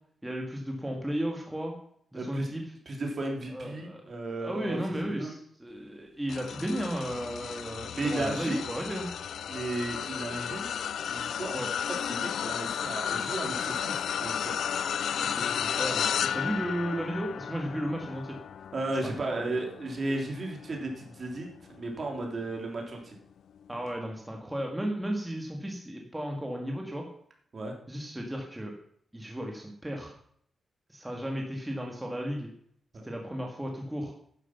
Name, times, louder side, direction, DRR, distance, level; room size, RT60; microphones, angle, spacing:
voice 1, 0.2-1.7 2.1-2.6 3.5-4.0 4.4-9.1 11.5-11.7 15.2-18.4 19.0-19.4 23.7-27.1 27.9-28.7 29.1-30.1 30.9-32.5 33.0-34.1, equal, 10° right, 1 dB, 1.9 m, -34 dB
voice 2, 2.1-2.5 2.8-4.8 5.2-5.4 7.9-8.6 9.5-10.7 11.0-11.5 12.1-14.6 18.7-23.2 27.5-27.7 32.9-33.0, right 2 dB, 40° right, 1 dB, 3.1 m, -34 dB
sound 1, 6.3-21.8 22.3-22.6 23.8-23.9, left 8 dB, 85° left, 0.4 m, -33 dB
11.0 x 9.8 x 5.9 m, 0.65 s
wide cardioid pair, 135°, 0 cm